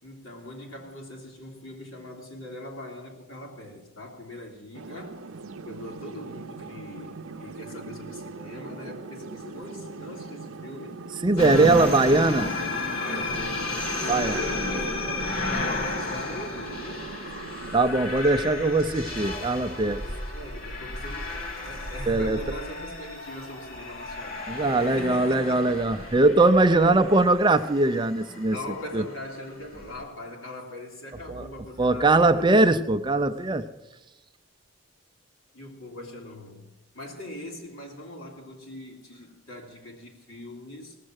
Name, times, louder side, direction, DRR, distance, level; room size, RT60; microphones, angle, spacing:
voice 1, 0.0-5.2 5.6-11.0 13.0-17.2 20.0-25.6 28.4-32.4 33.4-33.9 35.5-36.7 36.9-41.0, left 1 dB, 80° left, 3.2 m, -41 dB
sound 1, 4.7-17.8, right 4 dB, 80° right, 0.6 m, -41 dB
voice 2, 11.2-12.5 14.1-14.4 17.7-20.0 22.1-22.4 24.5-28.6 28.9-29.0 31.3-31.5 31.8-33.7, right 2 dB, 20° right, 0.4 m, -21 dB
sound 2, 11.4-30.0, left 2 dB, 45° left, 2.2 m, -33 dB
18.5 x 7.5 x 6.4 m
head